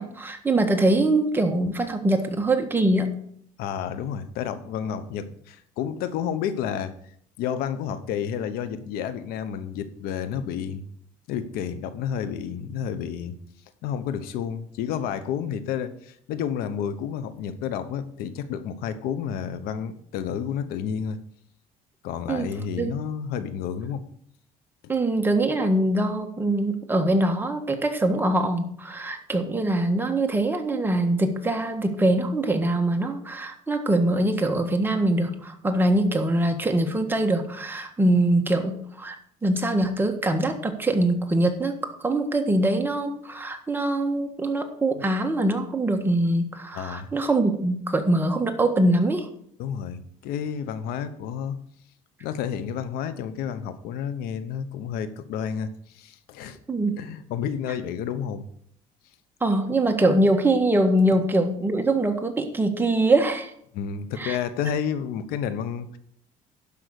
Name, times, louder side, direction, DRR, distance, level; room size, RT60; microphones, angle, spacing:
voice 1, 0.0-3.1 22.3-22.5 22.8-22.9 24.9-39.1 39.4-49.3 56.7-56.9 59.4-63.5 64.2-64.4, right 1 dB, 15° right, 4 dB, 1.6 m, -23 dB
voice 2, 3.6-6.9 7.4-10.9 11.3-13.3 13.8-21.2 22.0-24.1 24.8-25.0 46.7-47.1 49.6-51.6 52.2-56.6 57.0-58.5 63.7-66.0, left 8 dB, 80° left, 12 dB, 1.0 m, -30 dB
12.0 x 5.6 x 6.5 m, 0.65 s
cardioid pair, 110°, 15 cm